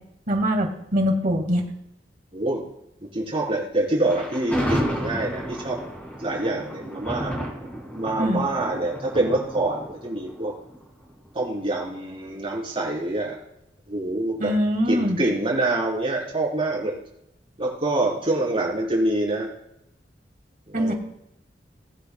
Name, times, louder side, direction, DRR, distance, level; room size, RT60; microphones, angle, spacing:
voice 1, 0.3-1.6 8.2-8.4 14.4-15.2 20.7-20.9, equal, 50° right, 2 dB, 2.0 m, -23 dB
voice 2, 3.1-5.8 6.2-7.4 7.9-10.5 11.3-13.3 13.9-14.5 14.9-16.9 17.6-19.5 20.7-20.9, right 2 dB, 35° right, -4 dB, 4.0 m, -25 dB
Thunder, 4.1-11.3, equal, 10° left, 2.8 m, -32 dB
20.0 x 8.1 x 2.3 m, 0.80 s
head